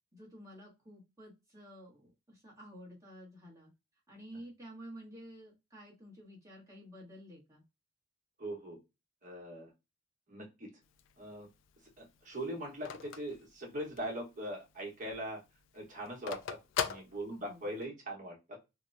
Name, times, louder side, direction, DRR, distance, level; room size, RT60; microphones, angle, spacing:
voice 1, 0.1-3.7 4.1-7.6 17.1-17.7, equal, 15° right, -5 dB, 1.1 m, -51 dB
voice 2, 8.4-8.8 9.2-9.7 10.3-10.7 11.2-11.5 12.0-15.4 15.7-18.6, right 1 dB, 40° right, -1 dB, 1.1 m, -41 dB
Telephone, 10.8-14.2 14.6-14.7 15.0-17.9, left 7 dB, 70° left, 0.3 m, -40 dB
2.9 x 2.1 x 2.5 m, 0.25 s
head